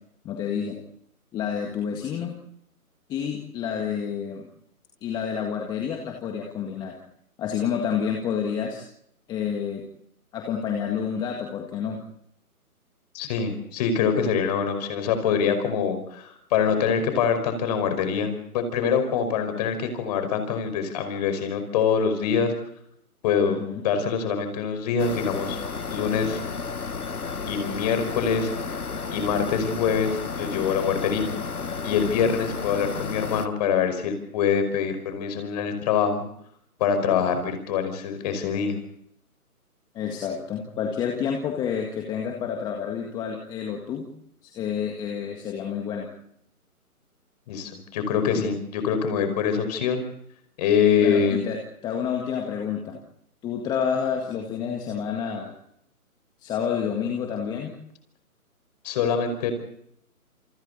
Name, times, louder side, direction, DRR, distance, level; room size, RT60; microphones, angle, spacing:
voice 1, 0.2-0.8 1.3-2.4 3.1-4.5 5.0-7.0 7.4-8.8 9.3-9.8 10.3-12.0 23.4-23.8 39.9-44.1 44.4-46.1 51.0-53.0 53.4-55.5 56.4-57.7, left 7 dB, 10° left, 2 dB, 1.7 m, -29 dB
voice 2, 13.1-22.5 23.2-23.6 23.8-25.6 25.9-26.4 27.5-28.5 29.1-31.3 31.8-36.2 36.8-38.8 47.5-50.0 50.6-51.4 58.8-59.5, left 6 dB, 25° left, 8 dB, 5.2 m, -24 dB
AC unit, 25.0-33.5, left 4 dB, 75° left, 1.8 m, -32 dB
29.5 x 28.5 x 4.1 m, 0.71 s
figure-of-eight pair, 150°, 45 cm